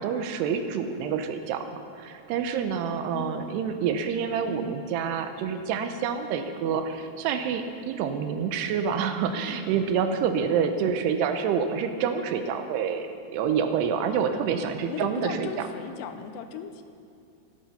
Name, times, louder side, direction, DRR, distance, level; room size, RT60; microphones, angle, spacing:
voice 1, 0.0-1.6 2.0-13.1 13.3-15.5, right 7 dB, 85° right, 7 dB, 2.8 m, -27 dB
voice 2, 3.1-3.4 14.5-16.8, left 7 dB, 85° left, 8 dB, 2.9 m, -36 dB
13.0 x 12.0 x 5.6 m, 2.5 s
omnidirectional pair, 4.8 m